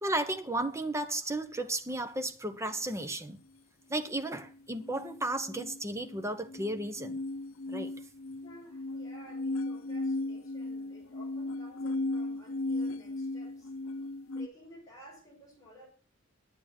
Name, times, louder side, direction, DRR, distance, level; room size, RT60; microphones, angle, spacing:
voice 1, 0.0-3.4 3.9-7.2 7.7-7.9, right 1 dB, 15° right, 1.0 m, -34 dB
sound 1, 4.8-14.5, left 2 dB, 90° left, 0.7 m, -36 dB
voice 2, 8.4-13.7 14.3-15.9, equal, 15° left, 5.1 m, -54 dB
10.5 x 9.1 x 6.0 m
head